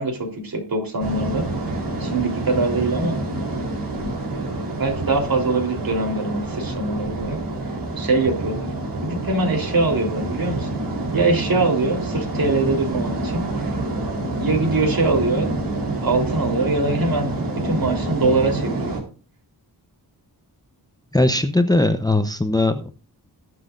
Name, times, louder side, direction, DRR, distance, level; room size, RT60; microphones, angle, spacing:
voice 1, 0.0-3.4 4.3-7.4 8.0-8.7 9.0-10.8 11.1-13.8 14.4-15.5 16.0-17.3 17.6-19.0, right 3 dB, 60° right, 3 dB, 3.7 m, -23 dB
sound 1, 1.0-19.0, right 2 dB, 90° right, 4.0 m, -27 dB
voice 2, 21.1-22.9, left 1 dB, 10° left, 9 dB, 0.8 m, -19 dB
20.0 x 7.7 x 2.6 m, 0.35 s
wide cardioid pair, 115°, 40 cm